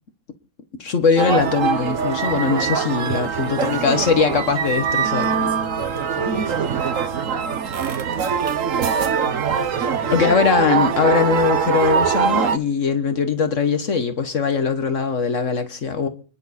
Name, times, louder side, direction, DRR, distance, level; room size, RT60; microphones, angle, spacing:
voice 1, 0.8-5.5 10.1-16.1, left 5 dB, 70° left, 1.6 m, -21 dB
sound 1, 1.2-12.6, right 6 dB, 80° right, 1.5 m, -22 dB
voice 2, 3.0-4.0 4.3-4.4 5.2-7.5 9.6-10.1, equal, 10° left, 3.9 m, -36 dB
29.5 x 10.5 x 4.2 m
omnidirectional pair, 1.3 m